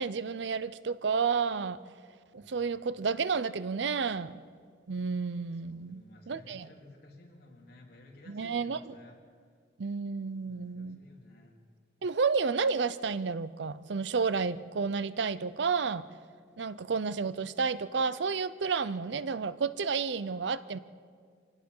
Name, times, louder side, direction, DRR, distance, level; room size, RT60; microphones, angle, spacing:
voice 1, 0.0-1.8 2.3-4.4 4.9-6.7 8.3-9.0 9.8-11.0 12.0-16.0 16.6-20.8, right 5 dB, 75° right, 16 dB, 0.6 m, -31 dB
voice 2, 5.7-9.2 10.4-11.6, left 1 dB, 60° left, -2 dB, 3.7 m, -55 dB
25.5 x 18.0 x 5.5 m, 2.1 s
head